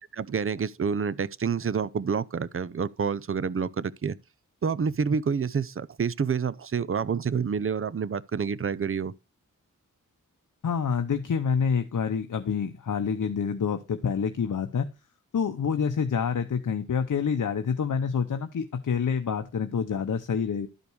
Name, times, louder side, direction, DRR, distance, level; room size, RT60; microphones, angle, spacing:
voice 1, 0.1-4.2 4.6-9.1, right 6 dB, 40° right, 0.6 m, -28 dB
voice 2, 10.6-14.9 15.3-20.7, left 6 dB, 65° left, 0.8 m, -27 dB
12.0 x 5.2 x 4.7 m
wide cardioid pair, 75°, 33 cm